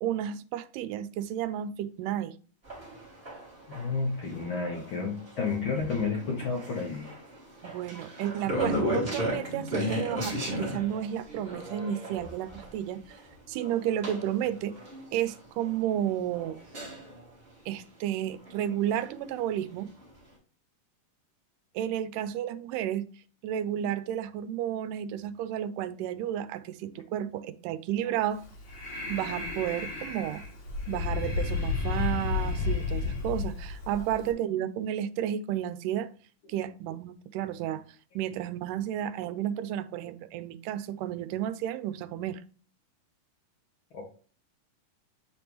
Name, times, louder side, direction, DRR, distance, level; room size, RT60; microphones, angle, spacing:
voice 1, 0.0-2.3 7.6-13.2 13.5-14.8 15.1-16.6 17.7-19.9 21.8-23.1 23.4-28.4 29.1-30.4 30.9-36.1 36.5-37.8 38.2-42.4, right 11 dB, 90° right, 2.2 m, -32 dB
sound 1, 2.6-17.3 18.5-19.6 20.0-20.1, equal, 25° right, 1.5 m, -36 dB
voice 2, 3.7-7.1 43.9-44.0, left 4 dB, 90° left, 1.1 m, -31 dB
Breathing, 28.3-34.3, left 5 dB, 45° left, 3.0 m, -32 dB
9.0 x 3.5 x 3.0 m
omnidirectional pair, 3.7 m